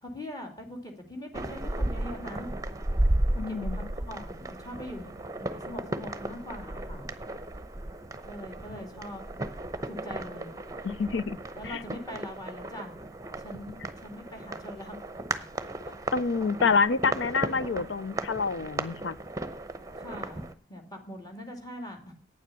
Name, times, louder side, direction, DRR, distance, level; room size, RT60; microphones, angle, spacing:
voice 1, 0.0-2.5 3.3-7.1 8.2-9.5 9.9-10.5 11.6-12.9 13.4-15.1 15.3-15.5 20.0-22.2, left 1 dB, 20° left, 2.5 m, -42 dB
sound 1, 1.3-20.5, right 1 dB, 20° right, 0.8 m, -34 dB
voice 2, 3.4-3.9 10.8-11.4 11.6-11.8 16.1-19.2, left 4 dB, 85° left, 0.5 m, -27 dB
9.4 x 7.6 x 6.9 m
head